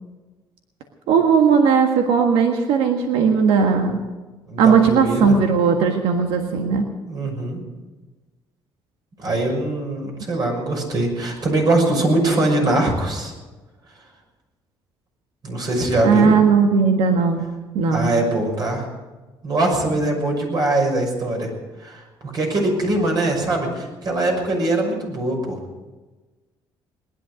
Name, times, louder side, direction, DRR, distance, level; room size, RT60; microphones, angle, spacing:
voice 1, 1.1-4.0 4.6-6.9 16.0-17.5 17.7-18.1, right 5 dB, 85° right, 4 dB, 1.6 m, -17 dB
voice 2, 4.5-5.4 7.1-7.6 9.2-13.3 15.4-16.3 17.9-18.9 19.4-21.5 21.8-25.6, right 2 dB, 45° right, 1 dB, 6.2 m, -22 dB
19.5 x 11.5 x 6.5 m, 1.2 s
cardioid pair, 90°, 9 cm